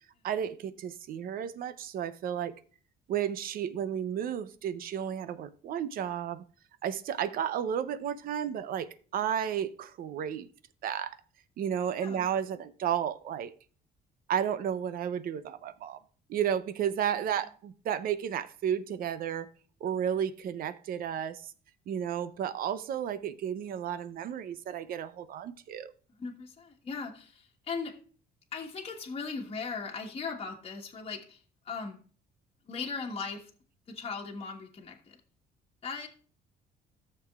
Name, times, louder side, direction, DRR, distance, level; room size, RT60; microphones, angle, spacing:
voice 1, 0.2-2.5 3.1-6.4 6.8-10.5 10.8-11.2 11.6-13.5 14.3-16.0 16.3-19.5 19.8-21.5 21.9-25.9, right 9 dB, 60° right, 14 dB, 0.6 m, -32 dB
voice 2, 26.2-27.9 28.5-32.0 32.6-33.5 33.9-35.2 35.8-36.1, left 5 dB, 35° left, 0 dB, 1.4 m, -38 dB
14.0 x 6.8 x 2.4 m, 0.42 s
cardioid pair, 110°, 17 cm